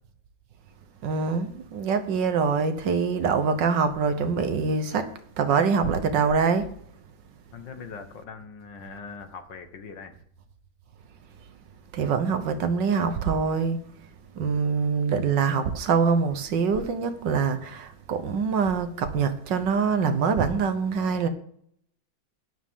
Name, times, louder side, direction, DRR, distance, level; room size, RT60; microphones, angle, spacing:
voice 1, 1.0-6.7 11.9-13.8 14.3-21.3, right 5 dB, 70° right, 1.6 m, -24 dB
voice 2, 7.5-10.2, left 5 dB, 70° left, 2.0 m, -41 dB
12.5 x 9.9 x 3.7 m
omnidirectional pair, 2.1 m